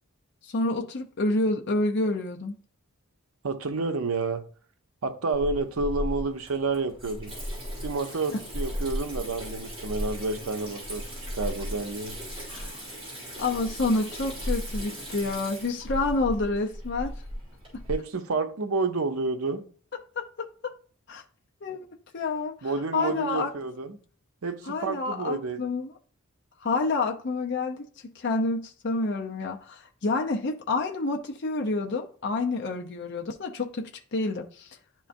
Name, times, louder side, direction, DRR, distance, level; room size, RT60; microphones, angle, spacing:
voice 1, 0.4-2.6 8.3-8.4 12.5-12.7 13.4-17.1 17.7-17.8 19.9-20.7 21.1-21.2 21.6-21.9 22.1-23.5 24.6-25.9 26.6-34.8, left 3 dB, 50° left, 0.6 m, -29 dB
voice 2, 3.4-4.4 5.0-7.3 7.8-11.1 11.3-12.2 17.9-19.7 22.6-24.0 24.4-25.6, right 3 dB, 75° right, 0.7 m, -29 dB
Water tap faucet / Sink (filling or washing), 5.3-18.0, equal, 25° right, 2.7 m, -36 dB
10.5 x 3.7 x 2.6 m
head